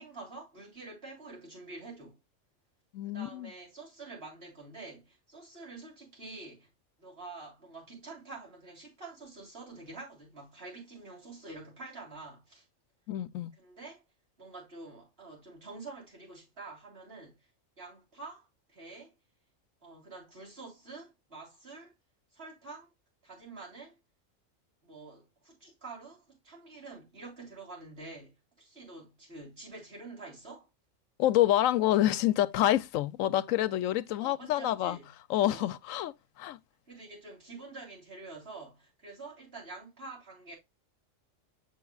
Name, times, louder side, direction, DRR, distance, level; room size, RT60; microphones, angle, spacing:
voice 1, 0.0-2.2 3.0-6.7 7.0-12.7 13.5-14.0 14.4-17.4 17.8-19.1 19.8-21.9 22.3-22.9 23.2-24.0 24.8-30.7 34.2-35.1 35.4-35.7 36.9-40.5, right 3 dB, 50° right, 3.8 m, -47 dB
voice 2, 2.9-3.5 13.1-13.5 31.2-35.0 35.3-36.1 36.4-36.6, left 13 dB, 90° left, 1.0 m, -27 dB
7.0 x 6.3 x 2.3 m
omnidirectional pair, 1.3 m